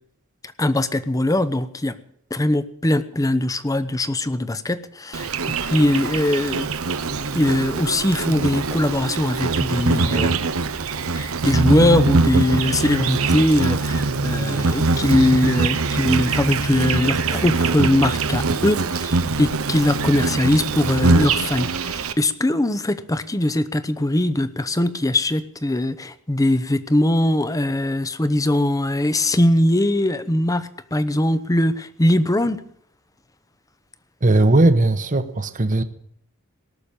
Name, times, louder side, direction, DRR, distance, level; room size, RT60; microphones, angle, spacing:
voice 1, 0.6-2.0 2.3-6.7 7.3-10.3 11.1-32.6, left 1 dB, 15° left, 13 dB, 0.7 m, -21 dB
Insect, 5.1-22.1, right 3 dB, 85° right, 0.9 m, -23 dB
voice 2, 34.2-35.8, right 2 dB, 40° right, 10 dB, 1.0 m, -17 dB
18.0 x 6.7 x 8.9 m, 0.67 s
head